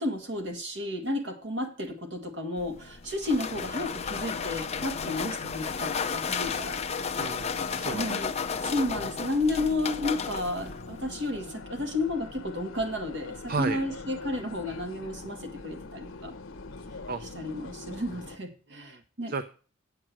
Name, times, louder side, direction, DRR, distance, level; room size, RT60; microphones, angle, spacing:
voice 1, 0.0-6.8 7.9-8.4 8.6-16.3 17.3-19.3, left 1 dB, 65° right, 4 dB, 2.0 m, -32 dB
sound 1, 2.6-11.3, left 6 dB, 30° left, 0.6 m, -33 dB
sound 2, 3.5-18.4, left 3 dB, 90° left, 0.8 m, -43 dB
voice 2, 7.2-8.0 13.5-13.8 17.1-17.2 18.7-19.0 19.3-19.4, right 4 dB, 50° right, 11 dB, 0.6 m, -32 dB
8.6 x 7.7 x 6.1 m, 0.38 s
head